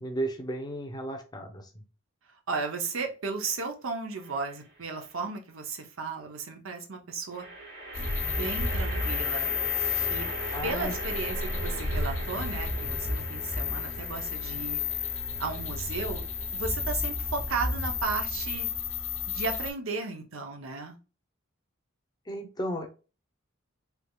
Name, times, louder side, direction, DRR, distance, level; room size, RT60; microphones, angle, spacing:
voice 1, 0.0-1.8 10.5-11.3 22.3-22.9, right 1 dB, 20° left, 5 dB, 0.6 m, -35 dB
voice 2, 2.5-7.4 8.2-9.5 10.1-10.3 10.6-16.2 16.5-18.7 19.3-21.0, right 4 dB, 80° right, 4 dB, 0.8 m, -35 dB
sound 1, 4.2-4.8 7.3-18.7, right 2 dB, 60° right, 1.5 m, -41 dB
sound 2, 7.9-19.7, left 5 dB, 75° left, 0.8 m, -32 dB
3.4 x 3.2 x 2.3 m, 0.33 s
head